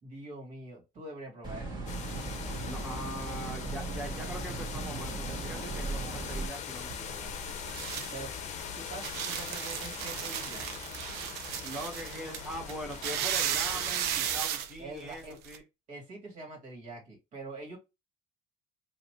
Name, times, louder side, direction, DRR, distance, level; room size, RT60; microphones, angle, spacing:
voice 1, 0.0-1.8 8.1-8.3 8.8-10.8 14.8-15.4 15.9-17.8, right 2 dB, 50° right, 2.3 m, -44 dB
sound 1, 1.4-6.5, right 3 dB, 25° right, 1.7 m, -37 dB
sound 2, 1.9-14.4, left 7 dB, 45° left, 0.7 m, -42 dB
voice 2, 2.6-7.4 11.6-15.6, equal, ahead, 1.3 m, -42 dB
sound 3, 6.8-15.6, right 10 dB, 90° right, 0.7 m, -35 dB
5.0 x 2.9 x 3.1 m
cardioid pair, 135°, 16 cm